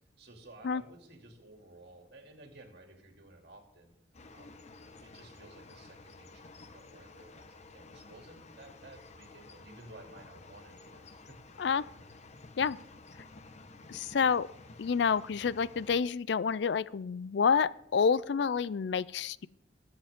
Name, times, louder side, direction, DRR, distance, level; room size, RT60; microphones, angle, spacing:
voice 1, 0.2-3.9 4.3-4.6 5.0-11.6, right 2 dB, 65° right, 3 dB, 2.6 m, -54 dB
sound 1, 4.1-16.0, left 3 dB, 40° left, 0.9 m, -53 dB
voice 2, 13.9-14.5 14.8-19.5, left 6 dB, 65° left, 19 dB, 0.4 m, -28 dB
21.0 x 8.0 x 3.6 m, 0.77 s
head